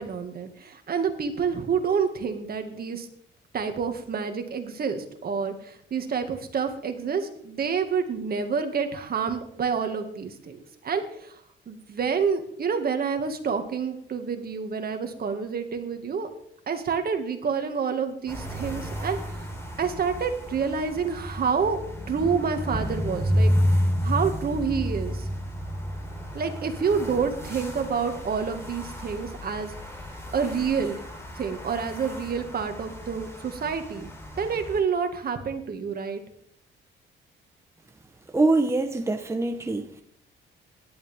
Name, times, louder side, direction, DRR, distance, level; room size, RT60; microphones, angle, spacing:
voice 1, 0.0-3.1 3.5-11.4 11.7-16.3 16.7-19.5 19.8-21.8 22.1-23.5 24.0-25.3 26.3-29.7 30.3-31.0 31.4-34.1 34.4-36.2, right 6 dB, 50° right, 2.0 m, -28 dB
sound 1, 18.3-34.8, equal, 15° left, 3.8 m, -31 dB
voice 2, 38.3-40.0, right 2 dB, 15° right, 1.0 m, -24 dB
17.0 x 11.5 x 3.6 m
cardioid pair, 90°, 20 cm